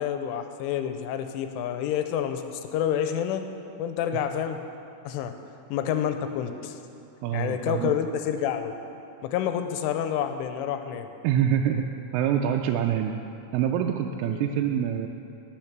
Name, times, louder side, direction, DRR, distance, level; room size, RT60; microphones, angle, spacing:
voice 1, 0.0-3.4 3.8-4.6 5.1-5.3 5.7-6.8 7.3-8.8 9.2-11.1 14.2-14.5, left 9 dB, 85° left, 8 dB, 3.1 m, -28 dB
voice 2, 7.2-7.9 11.2-11.9 12.1-13.2 13.5-15.1, right 9 dB, 90° right, 3 dB, 3.1 m, -25 dB
18.5 x 6.4 x 5.9 m, 2.7 s
omnidirectional pair, 5.6 m